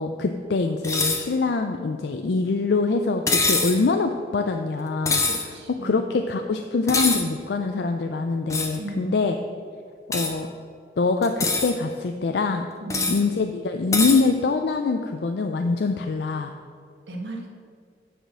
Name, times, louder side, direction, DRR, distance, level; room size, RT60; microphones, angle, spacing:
voice 1, 0.0-5.2 5.7-9.4 10.1-10.5 11.0-12.6 13.1-16.5, left 4 dB, 65° left, 6 dB, 0.4 m, -24 dB
sound 1, 0.8-1.2 3.3-3.8 5.1-5.4 6.9-7.2 8.5-8.8 10.1-10.3 11.2-11.7 12.9-13.2 13.9-14.2, left 3 dB, 15° left, 0.8 m, -23 dB
voice 2, 5.3-6.1 8.8-9.3 12.8-13.1 17.1-17.5, right 2 dB, 85° right, 1 dB, 1.5 m, -35 dB
8.8 x 5.1 x 6.2 m, 2.1 s
head